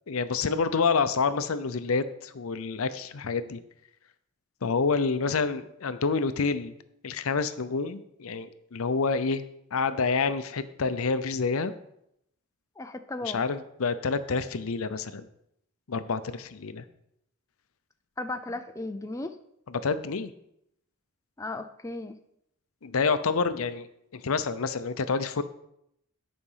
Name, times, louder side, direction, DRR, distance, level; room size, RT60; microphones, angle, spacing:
voice 1, 0.1-3.6 4.6-6.8 7.0-9.4 9.7-11.7 13.2-15.3 15.9-16.8 19.7-20.3 22.8-23.9 24.1-25.4, left 4 dB, 70° left, 13 dB, 0.6 m, -28 dB
voice 2, 12.8-13.4 18.2-19.4 21.4-22.1, left 2 dB, 15° left, 7 dB, 0.4 m, -35 dB
9.9 x 5.2 x 5.5 m, 0.77 s
head